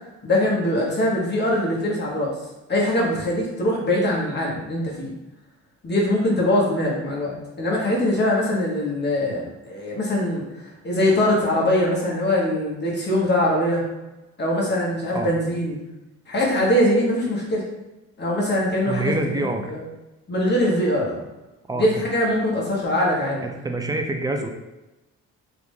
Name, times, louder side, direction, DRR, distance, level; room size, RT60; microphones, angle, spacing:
voice 1, 0.2-2.3 2.7-5.1 5.8-10.4 10.8-13.8 14.4-15.8 16.3-17.6 18.2-19.1 19.7-19.8 20.3-21.2 21.7-23.4, left 1 dB, 35° left, -4 dB, 1.3 m, -22 dB
voice 2, 18.9-19.7 21.7-22.0 23.4-24.5, right 2 dB, 15° right, 3 dB, 0.4 m, -26 dB
3.1 x 2.5 x 3.5 m, 1.0 s
cardioid pair, 90°, 30 cm